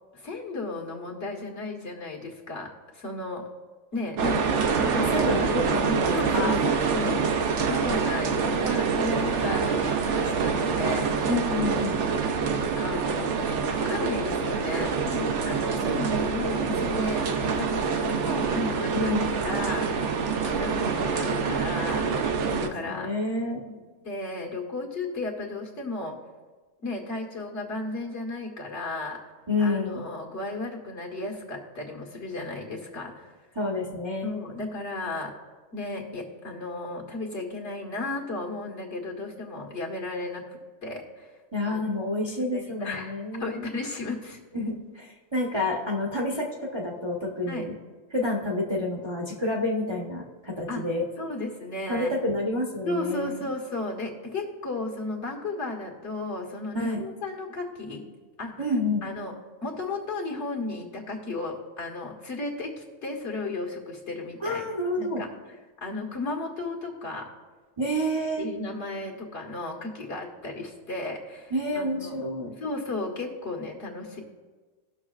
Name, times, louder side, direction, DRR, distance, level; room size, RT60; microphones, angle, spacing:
voice 1, 0.1-3.4 3.9-4.2 4.8-5.1 6.1-7.2 7.7-11.1 12.7-22.1 22.6-23.1 23.7-26.2 26.8-29.2 29.6-33.3 34.2-35.3 35.7-40.4 40.8-41.3 41.7-41.8 42.5-44.4 47.5-47.7 50.7-50.8 51.2-52.1 52.9-58.0 58.4-58.7 59.0-59.3 59.6-64.6 65.0-65.3 65.8-67.3 68.4-72.2 72.6-74.2, left 2 dB, 55° left, -1 dB, 1.8 m, -34 dB
sound 1, 4.2-22.7, right 5 dB, 65° right, 1.0 m, -26 dB
voice 2, 4.9-6.6 7.1-7.3 11.3-12.0 18.9-19.4 22.5-23.6 29.5-30.0 33.6-34.3 41.5-43.6 44.5-47.7 48.1-51.0 51.9-53.4 56.7-57.0 58.6-59.0 64.4-65.2 67.8-68.4 71.5-72.5, left 1 dB, 25° right, -2 dB, 0.9 m, -29 dB
19.0 x 6.3 x 2.4 m, 1.3 s
omnidirectional pair, 1.4 m